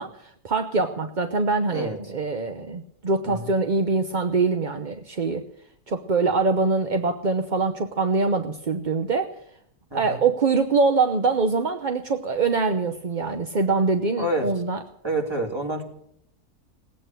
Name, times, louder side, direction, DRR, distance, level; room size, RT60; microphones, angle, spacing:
voice 1, 0.0-5.4 5.9-9.3 9.9-14.8, right 4 dB, 40° right, 6 dB, 0.8 m, -24 dB
voice 2, 9.9-10.2 14.2-14.5 15.0-15.8, right 1 dB, 15° right, 1 dB, 2.8 m, -28 dB
18.5 x 8.8 x 9.0 m, 0.71 s
omnidirectional pair, 1.7 m